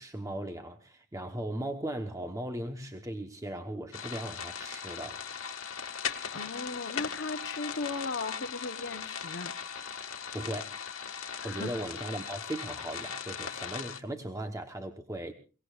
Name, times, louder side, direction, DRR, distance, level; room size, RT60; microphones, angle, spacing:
voice 1, 0.0-5.2 10.3-10.8 11.4-15.3, right 1 dB, 15° right, 1.1 m, -38 dB
sound 1, 3.9-14.0, left 7 dB, 80° left, 1.7 m, -39 dB
voice 2, 6.3-9.5 11.4-11.8, left 3 dB, 60° left, 1.0 m, -37 dB
29.0 x 18.5 x 2.5 m
head